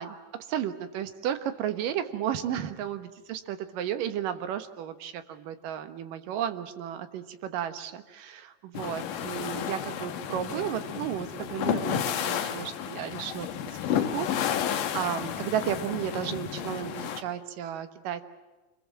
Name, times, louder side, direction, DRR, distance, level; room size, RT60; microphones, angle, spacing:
voice 1, 0.0-13.5 13.9-18.2, right 10 dB, 65° right, 9 dB, 2.5 m, -33 dB
sound 1, 8.7-17.2, left 9 dB, 65° left, 2.4 m, -32 dB
26.5 x 22.5 x 7.5 m, 1.2 s
omnidirectional pair, 4.9 m